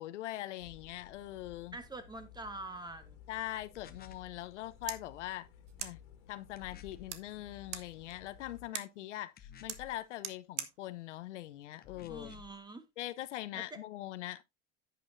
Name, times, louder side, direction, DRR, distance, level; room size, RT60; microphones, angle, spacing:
voice 1, 0.0-1.8 3.3-5.5 5.8-6.0 6.3-12.3 13.0-14.4, left 15 dB, 80° left, 1.0 m, -42 dB
sound 1, 0.6-8.7, left 8 dB, 60° left, 2.1 m, -56 dB
voice 2, 1.7-3.2 12.1-12.9 13.5-13.8, right 2 dB, 10° right, 1.5 m, -45 dB
sound 2, 3.7-4.3 6.6-7.1 9.4-10.0 11.8-12.6, left 8 dB, 25° left, 0.9 m, -53 dB
sound 3, 4.5-12.5, right 10 dB, 85° right, 1.4 m, -48 dB
10.0 x 8.6 x 2.7 m
hypercardioid pair, 105°, 35 cm